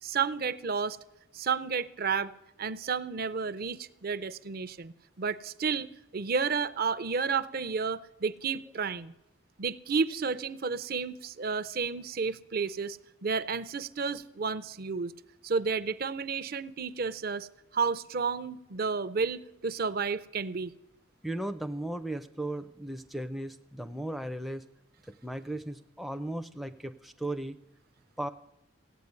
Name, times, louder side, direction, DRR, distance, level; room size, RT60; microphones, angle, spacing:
voice 1, 0.0-1.0 1.3-2.3 2.6-9.1 9.6-15.1 15.4-17.5 17.7-20.7, right 5 dB, 45° right, 16 dB, 0.6 m, -31 dB
voice 2, 21.2-24.6 25.2-27.6 28.2-28.3, right 1 dB, ahead, 7 dB, 0.5 m, -36 dB
16.0 x 8.3 x 9.5 m, 0.86 s
head